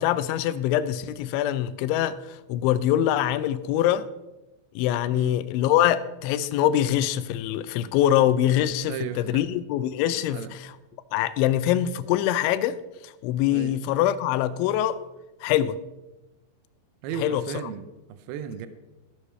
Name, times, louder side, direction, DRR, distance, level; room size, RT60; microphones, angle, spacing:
voice 1, 0.0-4.1 4.8-10.8 11.1-12.8 13.0-15.0 15.4-15.8 17.2-17.4, left 12 dB, 90° left, 15 dB, 3.0 m, -24 dB
voice 2, 8.9-9.4 10.3-10.5 13.5-13.8 17.0-18.7, right 7 dB, 85° right, 10 dB, 2.2 m, -35 dB
13.5 x 12.5 x 3.2 m, 1.0 s
omnidirectional pair, 5.3 m